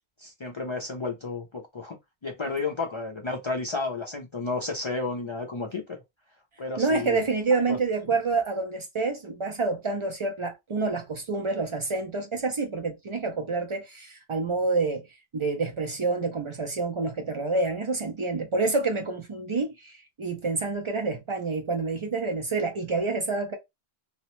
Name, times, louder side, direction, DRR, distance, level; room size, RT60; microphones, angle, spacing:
voice 1, 0.2-2.0 2.2-6.0 6.6-7.2 7.5-7.8, left 3 dB, 50° left, 0.3 m, -32 dB
voice 2, 6.8-15.1 15.3-23.6, right 3 dB, 55° right, 0.3 m, -28 dB
2.7 x 2.0 x 2.9 m
omnidirectional pair, 1.1 m